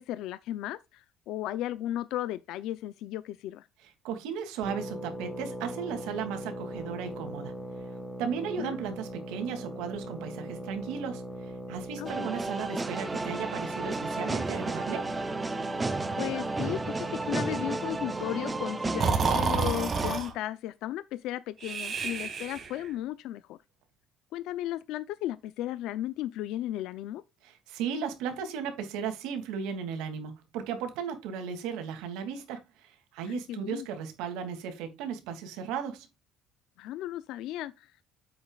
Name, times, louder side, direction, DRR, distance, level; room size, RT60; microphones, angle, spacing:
voice 1, 0.0-3.7 8.6-8.8 12.0-12.3 16.2-23.6 24.3-27.2 33.2-33.9 36.8-38.0, left 13 dB, 65° left, 0.6 m, -35 dB
voice 2, 4.0-7.5 8.2-11.2 11.7-15.1 27.4-36.1, right 7 dB, 90° right, 2.6 m, -35 dB
sound 1, 4.6-19.1, equal, 5° left, 1.6 m, -40 dB
sound 2, 12.1-20.2, right 3 dB, 15° right, 0.7 m, -33 dB
Breathing, 19.0-20.3 21.6-22.9, right 5 dB, 30° right, 1.8 m, -29 dB
9.6 x 7.9 x 2.4 m
cardioid pair, 170°, 0 cm